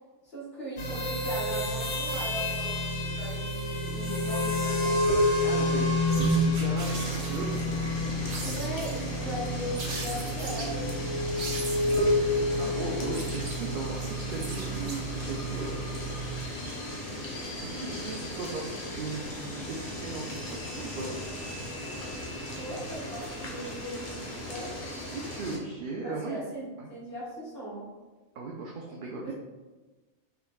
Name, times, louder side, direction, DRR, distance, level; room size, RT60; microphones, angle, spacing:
voice 1, 0.2-5.0 8.4-11.0 17.5-17.8 22.5-24.7 26.0-27.9 29.2-29.3, equal, 60° left, -9 dB, 1.8 m, -39 dB
sound 1, 0.8-16.4, left 1 dB, 80° left, 1.1 m, -29 dB
voice 2, 5.4-7.8 11.7-12.0 12.6-15.8 17.6-20.4 20.8-21.2 25.1-26.4 26.8-26.9 28.3-29.3, right 3 dB, 55° right, -2 dB, 0.7 m, -37 dB
sound 2, 6.1-7.6 8.3-9.1 9.7-10.7 11.4-12.2 12.9-15.3, right 3 dB, 80° right, 1.2 m, -40 dB
sound 3, 6.8-25.6, left 1 dB, 35° left, 0.9 m, -38 dB
5.7 x 3.9 x 2.3 m, 1.2 s
omnidirectional pair, 1.2 m